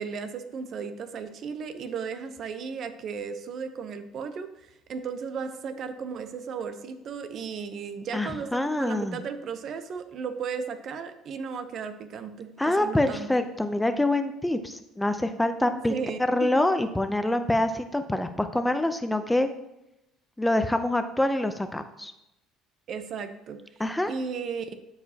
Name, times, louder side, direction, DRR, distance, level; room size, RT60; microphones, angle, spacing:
voice 1, 0.0-13.3 15.7-16.5 22.9-23.6 24.1-24.7, right 6 dB, 55° right, 9 dB, 0.8 m, -35 dB
voice 2, 8.1-9.2 12.6-15.9 16.3-19.5 20.4-22.1 23.8-24.1, left 1 dB, 10° left, 9 dB, 0.6 m, -26 dB
13.0 x 4.8 x 2.9 m, 0.87 s
supercardioid pair, 100°, 0 cm